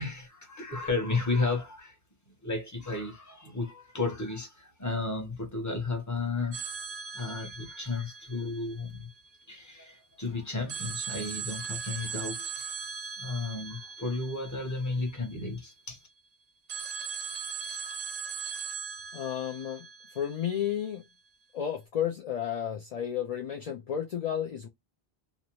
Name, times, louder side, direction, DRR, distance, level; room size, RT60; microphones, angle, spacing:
voice 1, 0.0-2.0 2.3-6.9 7.1-9.1 9.5-12.9 13.2-16.0, left 3 dB, 20° left, 0.8 m, -33 dB
sound 1, 6.5-9.4 10.7-15.6 16.7-20.9, right 6 dB, 50° right, 0.5 m, -39 dB
voice 2, 19.1-19.8 20.1-21.0 21.5-24.7, left 9 dB, 55° left, 0.4 m, -32 dB
2.6 x 2.1 x 2.9 m
omnidirectional pair, 1.0 m